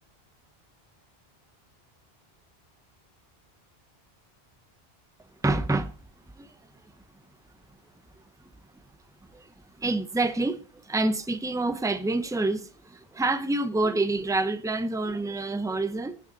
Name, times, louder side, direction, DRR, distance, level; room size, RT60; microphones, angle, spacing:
voice 1, 5.4-5.9 6.4-6.5 8.4-8.5 9.3-9.5 9.8-16.2, right 2 dB, 5° right, 0.7 m, -27 dB
18.5 x 6.5 x 4.0 m
omnidirectional pair, 1.0 m